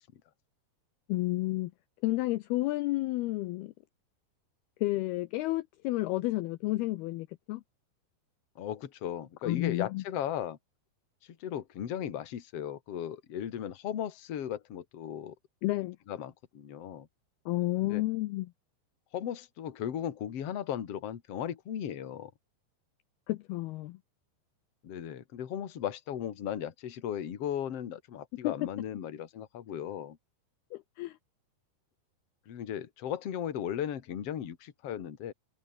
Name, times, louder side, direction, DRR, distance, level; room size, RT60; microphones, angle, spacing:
voice 1, 1.1-1.7 2.0-3.7 4.8-7.6 9.4-10.0 15.6-16.0 17.5-18.5 23.3-24.0 28.4-28.5 30.7-31.2, left 19 dB, 80° left, 2.4 m, -31 dB
voice 2, 8.6-10.6 11.4-15.3 16.1-17.1 17.8-18.0 19.1-22.3 24.8-30.2 32.5-35.3, left 10 dB, 45° left, 2.3 m, -36 dB
omnidirectional pair, 5.1 m